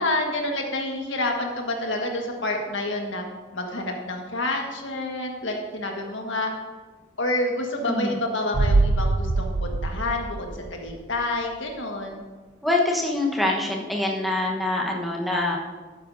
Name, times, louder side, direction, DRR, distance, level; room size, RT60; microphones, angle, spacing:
voice 1, 0.0-3.2 3.5-6.5 7.2-12.2, left 2 dB, 85° left, 2 dB, 1.5 m, -28 dB
sound 1, 8.5-11.2 11.5-11.6, right 3 dB, 35° right, 0.3 m, -24 dB
voice 2, 12.6-15.6, left 2 dB, ahead, -2 dB, 1.0 m, -24 dB
11.5 x 9.5 x 2.6 m, 1.4 s
head